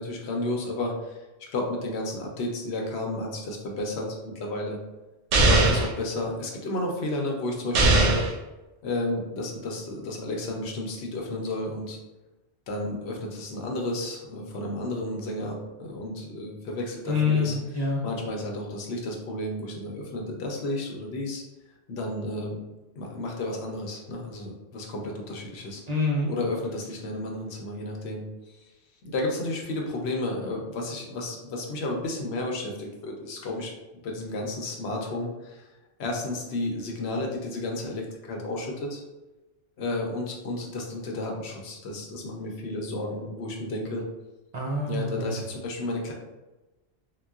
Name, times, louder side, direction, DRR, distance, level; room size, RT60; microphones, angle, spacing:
voice 1, 0.0-4.8 5.4-8.2 8.8-12.0 12.7-17.5 18.0-21.4 21.9-22.6 23.0-25.8 26.3-28.7 29.0-33.7 34.0-35.7 36.0-39.0 39.8-44.0 44.9-46.1, left 2 dB, 70° left, 0 dB, 0.9 m, -32 dB
sound 1, 5.3-5.9 7.7-8.3, right 2 dB, 80° right, 0.9 m, -20 dB
voice 2, 17.1-18.0 25.9-26.3 44.5-45.4, left 3 dB, 50° right, -4 dB, 0.5 m, -26 dB
3.8 x 2.2 x 2.3 m, 1.0 s
omnidirectional pair, 1.2 m